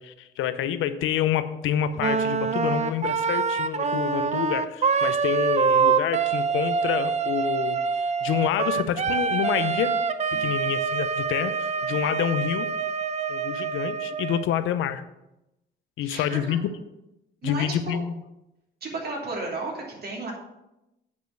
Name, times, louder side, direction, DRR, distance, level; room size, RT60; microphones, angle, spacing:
voice 1, 0.0-10.0 10.4-12.7 13.3-15.0 16.0-16.6 17.4-18.1, left 10 dB, 85° left, 12 dB, 0.6 m, -28 dB
Wind instrument woodwind instrument, 2.0-14.5, right 5 dB, 35° right, 0.6 m, -25 dB
voice 2, 10.3-10.6 11.9-12.1 16.0-16.6 17.4-18.0 18.8-20.3, right 2 dB, 50° right, -1 dB, 2.9 m, -34 dB
8.3 x 5.2 x 6.4 m, 0.92 s
cardioid pair, 90°, 20 cm